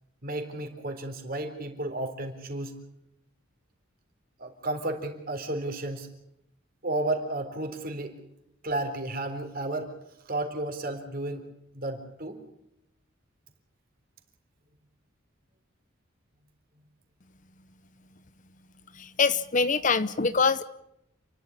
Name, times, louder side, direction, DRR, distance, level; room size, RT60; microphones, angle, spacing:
voice 1, 0.2-2.7 4.4-6.1 6.8-8.1 8.6-9.9 10.3-11.5 11.7-12.4, right 2 dB, 45° right, 5 dB, 3.8 m, -32 dB
voice 2, 19.0-20.6, left 4 dB, 40° left, 14 dB, 0.8 m, -24 dB
29.0 x 11.5 x 10.0 m, 0.81 s
head